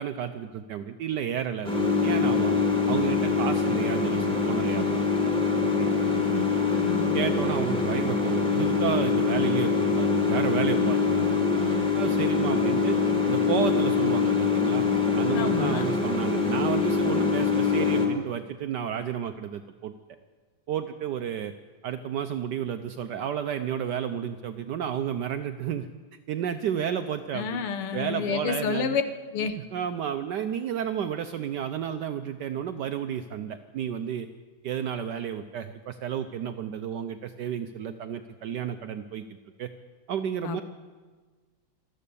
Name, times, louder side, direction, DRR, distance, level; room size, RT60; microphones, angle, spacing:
voice 1, 0.0-1.7 2.0-2.6 2.9-5.3 5.6-6.2 7.1-11.7 11.9-13.0 13.3-14.8 15.2-19.9 20.7-21.5 21.8-25.9 26.3-27.6 27.9-29.0 29.7-34.3 34.6-39.2 39.6-39.7 40.1-40.6, right 9 dB, 75° right, 8 dB, 1.0 m, -31 dB
sound 1, 1.6-18.1, left 4 dB, ahead, 1.9 m, -24 dB
voice 2, 6.7-7.2 15.3-16.0 27.3-29.0 29.3-29.6 40.4-40.6, left 7 dB, 90° left, 9 dB, 1.9 m, -30 dB
14.0 x 13.0 x 6.8 m, 1.4 s
omnidirectional pair, 2.4 m